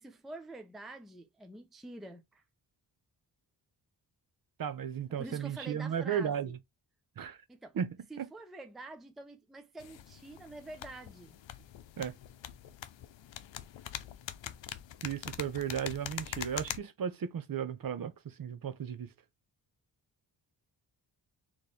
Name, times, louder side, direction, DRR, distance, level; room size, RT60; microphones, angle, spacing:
voice 1, 0.0-2.4 5.2-6.5 7.5-7.8 8.1-11.4, right 2 dB, ahead, 0.5 m, -47 dB
voice 2, 4.6-6.6 7.2-7.4 7.8-7.9 8.2-8.3 12.0-12.1 15.0-18.1 18.4-19.1, right 8 dB, 50° right, 0.7 m, -35 dB
sound 1, 9.8-16.8, left 11 dB, 90° left, 0.7 m, -44 dB
4.3 x 3.1 x 3.3 m
wide cardioid pair, 170°, 44 cm